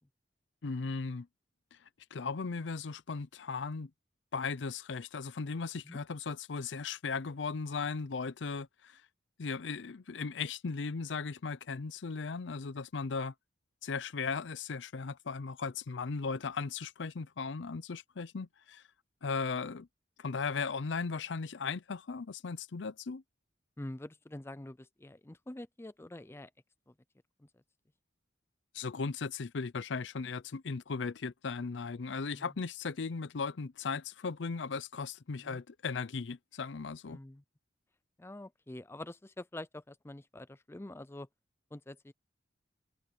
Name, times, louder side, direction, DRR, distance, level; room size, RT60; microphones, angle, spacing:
voice 1, 0.6-1.3 2.1-3.9 4.3-9.0 9.4-13.3 13.8-18.8 19.2-19.9 20.2-23.2 28.7-37.2, left 4 dB, 70° left, 0.6 m, -37 dB
voice 2, 23.8-26.5 26.9-27.0 27.4-27.5 32.3-32.5 35.4-35.6 37.1-37.4 38.2-41.3 41.7-42.1, left 1 dB, 15° left, 0.5 m, -46 dB
head